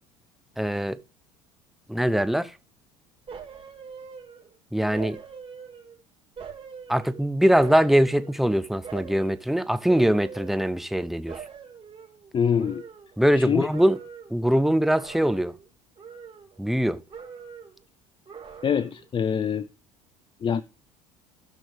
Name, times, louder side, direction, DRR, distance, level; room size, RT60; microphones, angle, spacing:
voice 1, 0.6-1.0 1.9-2.5 4.7-5.2 6.9-11.4 13.2-14.0 14.3-15.5 16.6-17.0, equal, ahead, 0.8 m, -22 dB
sound 1, 3.3-4.6 4.9-6.0 6.4-8.5 8.8-9.4 9.9-11.0 11.3-13.4 13.7-14.4 14.9-15.7 16.0-16.8 17.1-17.8 18.3-19.1 19.4-19.5, right 6 dB, 35° right, 4.3 m, -43 dB
voice 2, 12.3-12.8 13.3-13.7 18.6-19.7 20.4-20.6, left 7 dB, 30° left, 0.6 m, -24 dB
16.5 x 6.1 x 3.4 m
hypercardioid pair, 70°, 16 cm